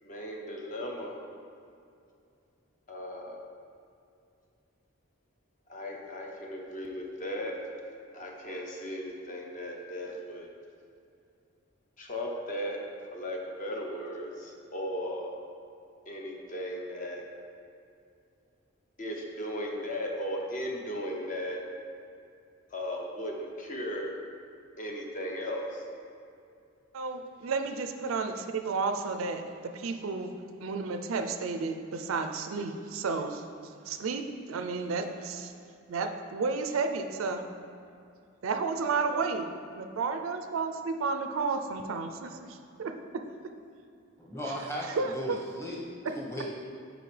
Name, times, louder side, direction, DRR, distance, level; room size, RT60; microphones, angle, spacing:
voice 1, 0.0-1.2 2.9-3.4 5.7-7.6 8.1-10.5 12.0-12.8 13.1-15.3 16.1-17.2 19.0-21.6 22.7-24.1 24.8-25.8, equal, 40° left, 0 dB, 0.8 m, -36 dB
voice 2, 26.9-29.4 29.7-30.3 30.6-33.4 33.9-35.5 35.9-37.5 38.4-39.5 39.7-43.2 44.9-45.4, right 4 dB, 85° right, 6 dB, 0.4 m, -32 dB
voice 3, 44.2-45.8 46.1-46.5, equal, 15° left, -4 dB, 1.0 m, -36 dB
7.7 x 5.0 x 3.3 m, 2.5 s
head